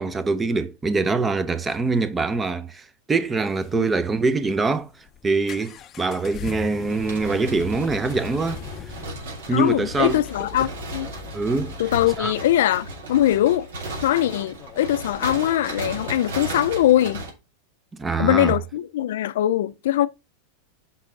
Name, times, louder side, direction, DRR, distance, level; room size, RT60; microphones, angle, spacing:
voice 1, 0.0-4.9 5.2-8.6 9.5-10.2 11.3-11.7 12.2-12.3 17.9-18.5, right 3 dB, 15° right, 0.7 m, -24 dB
sound 1, 3.2-17.1, left 9 dB, 30° left, 0.6 m, -42 dB
sound 2, 6.9-17.3, right 2 dB, 85° right, 2.6 m, -35 dB
voice 2, 9.5-11.1 11.8-13.7 14.0-17.2 18.2-20.1, left 12 dB, 75° left, 0.4 m, -21 dB
5.7 x 5.5 x 3.8 m
supercardioid pair, 130°, 0 cm